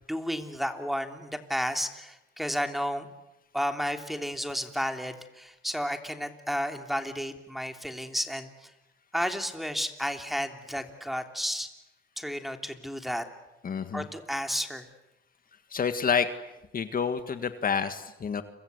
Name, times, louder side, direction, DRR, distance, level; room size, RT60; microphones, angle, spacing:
voice 1, 0.1-3.1 3.5-8.7 9.1-11.7 12.2-13.2 13.9-14.9, equal, ahead, 6 dB, 3.2 m, -32 dB
voice 2, 13.6-14.1 15.7-16.3 16.7-18.4, left 6 dB, 45° left, 9 dB, 1.7 m, -28 dB
30.0 x 24.5 x 8.2 m, 0.94 s
cardioid pair, 90°, 20 cm